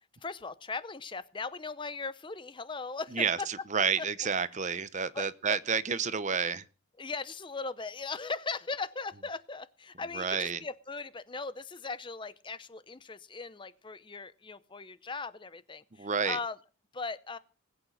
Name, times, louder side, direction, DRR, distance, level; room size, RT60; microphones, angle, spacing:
voice 1, 0.2-3.2 4.0-4.1 5.1-5.3 7.0-16.6 16.9-17.4, left 4 dB, 20° left, 0.6 m, -38 dB
voice 2, 3.1-6.6 10.1-10.6 16.0-16.4, right 6 dB, 35° right, 0.7 m, -30 dB
20.0 x 8.8 x 6.5 m
head